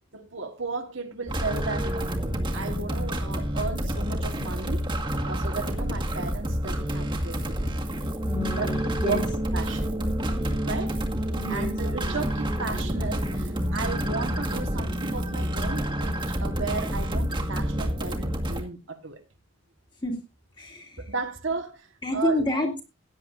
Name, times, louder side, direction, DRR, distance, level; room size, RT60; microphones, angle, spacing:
voice 1, 0.1-2.1 2.5-4.8 5.2-7.7 8.6-8.7 9.0-9.9 10.6-11.0 11.5-19.2 21.1-22.4, right 3 dB, 65° right, 1.6 m, -34 dB
sound 1, 1.3-18.6, equal, 20° right, 1.7 m, -28 dB
voice 2, 8.3-9.2 11.3-11.7 20.0-20.2 20.6-21.0 22.0-22.8, left 1 dB, 20° left, 2.5 m, -29 dB
17.0 x 10.0 x 2.6 m
head